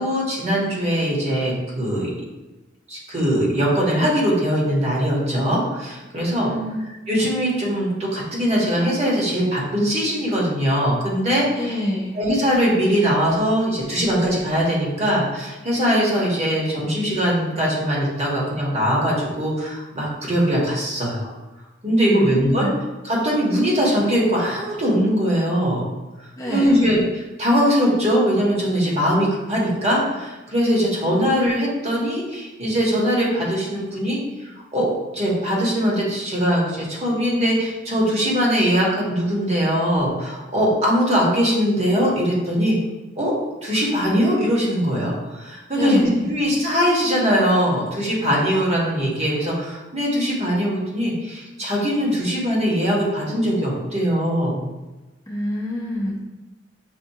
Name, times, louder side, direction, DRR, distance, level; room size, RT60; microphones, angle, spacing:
voice 1, 0.0-2.1 2.9-6.5 7.1-11.7 12.1-21.3 21.8-22.7 23.0-25.9 26.2-34.9 35.1-42.8 43.2-43.3 43.6-54.6, equal, 35° right, -4 dB, 1.0 m, -21 dB
voice 2, 6.3-6.9 11.6-12.2 22.1-22.8 26.4-26.8 31.0-31.2 45.7-46.3 55.3-56.2, left 1 dB, 20° left, -5 dB, 0.6 m, -26 dB
5.8 x 2.4 x 2.7 m, 1.1 s
head